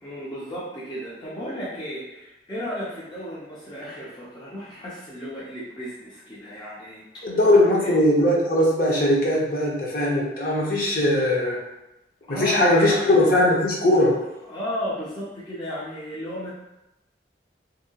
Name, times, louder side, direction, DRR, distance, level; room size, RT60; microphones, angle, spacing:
voice 1, 0.0-7.4 7.8-7.9 12.3-13.3 14.4-16.5, equal, 25° left, -8 dB, 0.5 m, -34 dB
voice 2, 7.2-11.6 12.3-14.2, left 1 dB, 50° left, -4 dB, 0.8 m, -20 dB
2.7 x 2.7 x 2.7 m, 0.93 s
head